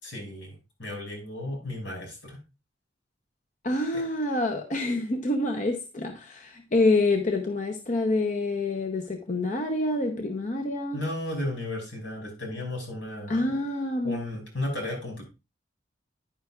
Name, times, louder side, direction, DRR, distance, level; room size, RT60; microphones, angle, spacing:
voice 1, 0.0-2.4 3.9-4.0 10.9-13.5 14.0-15.2, left 1 dB, 85° left, 5.5 m, -34 dB
voice 2, 3.6-11.0 13.3-14.2, left 2 dB, 45° left, 0.8 m, -27 dB
10.5 x 9.4 x 2.4 m
head